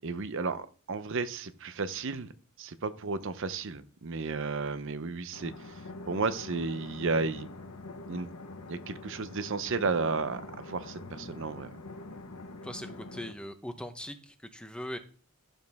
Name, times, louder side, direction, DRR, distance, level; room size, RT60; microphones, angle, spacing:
voice 1, 0.0-2.3 2.6-5.8 6.1-7.5 8.1-8.3 8.7-11.7, right 4 dB, 60° right, 0.7 m, -33 dB
sound 1, 5.3-13.3, left 2 dB, 85° left, 1.0 m, -45 dB
voice 2, 12.6-15.0, equal, 5° left, 0.8 m, -40 dB
12.5 x 7.2 x 3.5 m
head